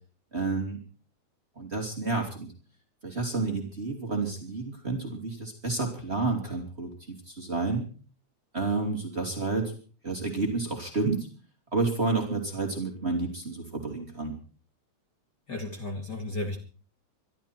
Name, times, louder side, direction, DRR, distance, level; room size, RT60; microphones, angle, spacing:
voice 1, 0.3-0.8 1.6-2.5 3.0-7.9 8.5-9.7 10.0-11.3 11.7-14.4, right 3 dB, 20° right, 2 dB, 2.9 m, -30 dB
voice 2, 15.5-16.6, left 2 dB, 35° left, 2 dB, 2.4 m, -33 dB
23.5 x 12.5 x 4.5 m, 0.40 s
omnidirectional pair, 3.4 m